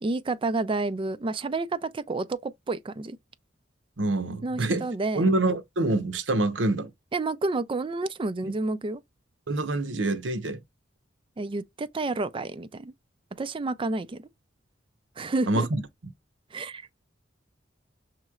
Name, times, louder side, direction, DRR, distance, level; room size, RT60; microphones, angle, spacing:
voice 1, 0.0-3.2 4.4-5.2 7.1-9.0 11.4-12.9 13.4-14.3 15.2-15.7 16.5-16.9, right 3 dB, 30° right, 0.4 m, -30 dB
voice 2, 4.0-4.9 5.1-6.9 8.4-8.5 9.5-10.6 15.5-15.8, right 2 dB, 80° right, 0.8 m, -26 dB
6.5 x 3.1 x 2.3 m
head